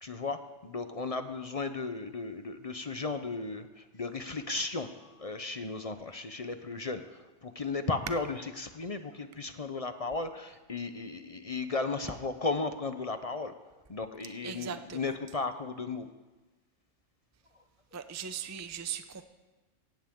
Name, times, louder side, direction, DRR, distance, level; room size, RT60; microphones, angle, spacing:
voice 1, 0.0-13.5 13.9-16.1, left 3 dB, 35° left, 9 dB, 0.6 m, -35 dB
voice 2, 14.4-15.0 17.9-19.2, right 8 dB, 20° right, 10 dB, 0.5 m, -39 dB
16.5 x 16.5 x 3.7 m, 1.2 s
omnidirectional pair, 1.3 m